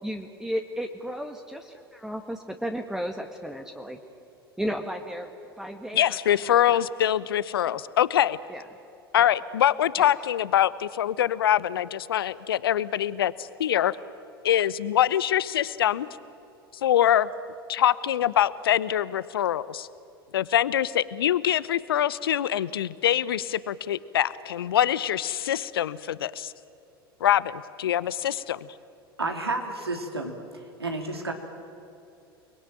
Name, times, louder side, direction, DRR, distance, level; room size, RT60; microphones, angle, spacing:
voice 1, 0.0-4.0 4.6-6.8 7.6-7.8 8.5-8.6 9.2-9.3 10.0-10.1, equal, 5° right, 4 dB, 1.7 m, -34 dB
voice 2, 5.9-8.4 9.1-14.0 14.4-16.1 16.8-17.3 17.7-19.9 20.3-26.5 27.2-28.7, left 11 dB, 70° left, 18 dB, 0.9 m, -24 dB
voice 3, 29.2-30.4 30.8-31.3, right 2 dB, 85° right, 3 dB, 3.4 m, -30 dB
29.5 x 21.5 x 9.0 m, 2.8 s
figure-of-eight pair, 80°, 13 cm